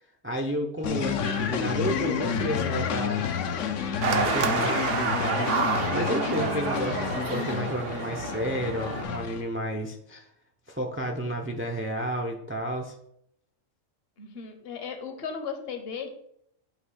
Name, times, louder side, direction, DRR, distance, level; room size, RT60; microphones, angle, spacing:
voice 1, 0.2-3.3 4.1-5.5 5.9-10.2 10.7-12.9, equal, 20° right, 2 dB, 0.3 m, -31 dB
sound 1, 0.8-9.4, left 7 dB, 75° left, 1.0 m, -30 dB
sound 2, 4.0-9.0, right 5 dB, 70° right, 1.0 m, -29 dB
voice 2, 14.2-16.1, left 6 dB, 55° left, 5 dB, 1.1 m, -36 dB
7.8 x 2.8 x 4.8 m, 0.71 s
omnidirectional pair, 1.3 m